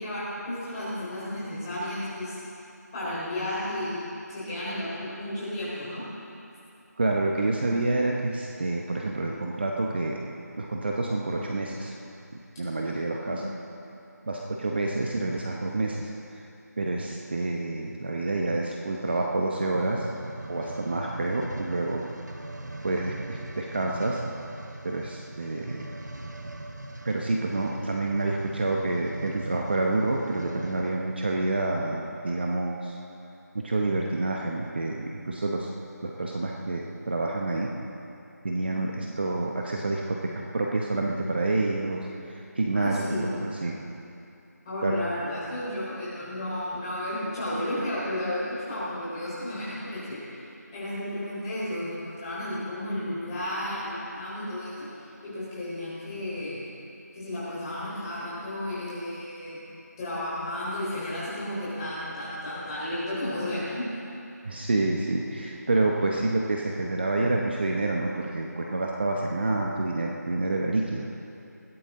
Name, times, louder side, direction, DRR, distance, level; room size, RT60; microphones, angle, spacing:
voice 1, 0.0-2.4 2.9-4.0 4.3-6.0 13.3-13.4 42.7-43.3 44.7-50.2 50.7-54.9 55.2-56.7 57.1-59.6 60.0-63.9, left 1 dB, 15° left, -10 dB, 4.1 m, -33 dB
voice 2, 7.0-10.2 10.6-11.9 12.6-13.4 14.3-16.4 16.8-20.1 20.5-22.0 22.8-24.2 24.8-25.8 27.0-33.0 33.5-35.7 36.0-37.7 38.4-43.0 43.4-43.8 44.8-45.0 64.4-71.1, right 2 dB, 35° right, -1 dB, 1.1 m, -28 dB
sound 1, 19.8-31.1 31.7-31.8, right 2 dB, 80° right, 1.4 m, -41 dB
20.0 x 15.5 x 3.8 m, 2.7 s
figure-of-eight pair, 170°, 9 cm